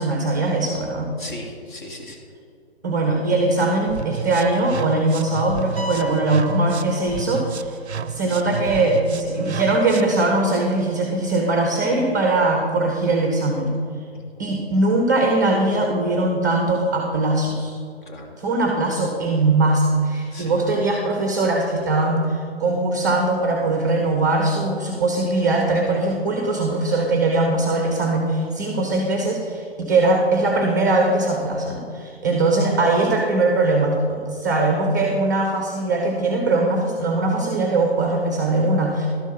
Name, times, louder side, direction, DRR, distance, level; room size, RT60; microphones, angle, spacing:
voice 1, 0.0-1.1 2.8-7.7 8.1-13.8 14.4-17.7 18.4-39.1, right 2 dB, 15° right, 2 dB, 0.6 m, -21 dB
voice 2, 1.2-2.2 14.1-14.5 18.1-18.3 20.2-20.6, left 1 dB, 45° left, 0 dB, 1.8 m, -38 dB
sound 1, 3.9-10.2, right 6 dB, 80° right, 0.5 m, -32 dB
sound 2, 5.8-7.7, left 3 dB, 15° left, 1.1 m, -36 dB
12.0 x 4.5 x 5.8 m, 2.4 s
figure-of-eight pair, 140°, 33 cm